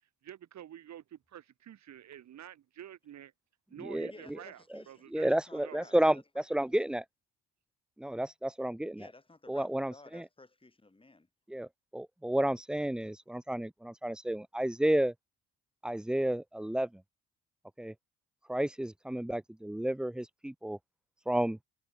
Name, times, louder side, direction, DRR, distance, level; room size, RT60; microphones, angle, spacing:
voice 1, 0.2-3.3 3.7-5.9, right 11 dB, 65° right, 2.3 m, -49 dB
voice 2, 4.1-7.0 9.0-11.3, left 2 dB, 15° left, 5.9 m, -55 dB
voice 3, 5.1-7.0 8.0-9.1 9.5-10.2 11.5-15.1 15.8-16.9 17.8-17.9 18.5-20.8 21.3-21.6, right 1 dB, 5° right, 0.4 m, -31 dB
cardioid pair, 90°, 30 cm